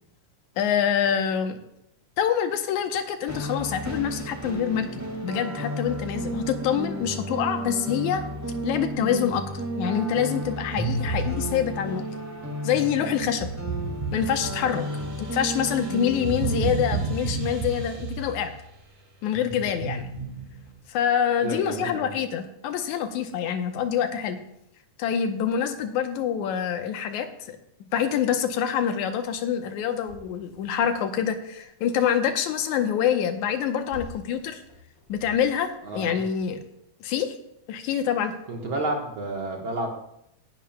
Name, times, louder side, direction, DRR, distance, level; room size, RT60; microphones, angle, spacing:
voice 1, 0.6-1.6 2.2-8.2 8.6-9.4 9.8-12.0 12.6-13.5 14.1-14.9 15.2-18.5 19.2-20.0 20.9-24.4 25.0-27.6 27.9-34.6 35.1-36.6 37.0-37.4 37.7-38.3, left 8 dB, 80° left, 7 dB, 2.2 m, -26 dB
sound 1, 3.3-16.6, right 1 dB, 10° right, 0.9 m, -33 dB
sound 2, 10.8-12.0 13.2-18.6 19.3-20.7, right 3 dB, 75° right, 4.0 m, -32 dB
voice 2, 21.4-22.1 35.8-36.2 38.5-39.9, right 2 dB, 55° right, 1 dB, 1.7 m, -30 dB
sound 3, 29.8-31.1 33.4-35.8 36.5-36.6, left 4 dB, 30° right, 4.3 m, -47 dB
17.5 x 11.0 x 2.2 m, 0.78 s
omnidirectional pair, 3.4 m